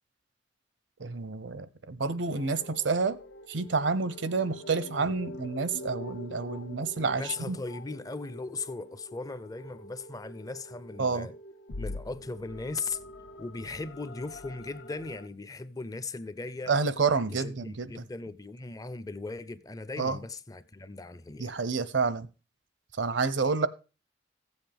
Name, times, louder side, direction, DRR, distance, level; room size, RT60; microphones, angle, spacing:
voice 1, 1.0-3.2 3.5-7.6 11.0-11.3 16.7-17.9 20.0-20.2 21.4-22.3 23.0-23.7, right 4 dB, 70° right, 0.7 m, -29 dB
sound 1, 2.2-15.3, left 1 dB, 75° left, 0.8 m, -45 dB
voice 2, 7.1-11.3 11.8-13.0 13.4-16.7 17.3-21.5, left 3 dB, 20° left, 0.5 m, -38 dB
15.0 x 8.0 x 3.4 m
head